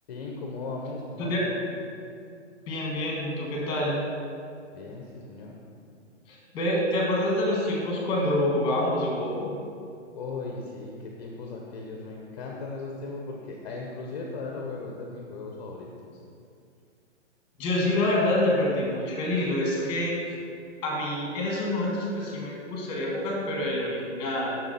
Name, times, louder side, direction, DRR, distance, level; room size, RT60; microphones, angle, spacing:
voice 1, 0.1-1.7 4.7-5.6 10.1-16.2, left 3 dB, 35° left, 0 dB, 0.8 m, -37 dB
voice 2, 2.7-4.0 6.3-9.5 17.6-20.3 20.8-24.6, left 1 dB, 15° left, -2 dB, 1.5 m, -27 dB
7.1 x 6.1 x 4.1 m, 2.4 s
hypercardioid pair, 155°, 36 cm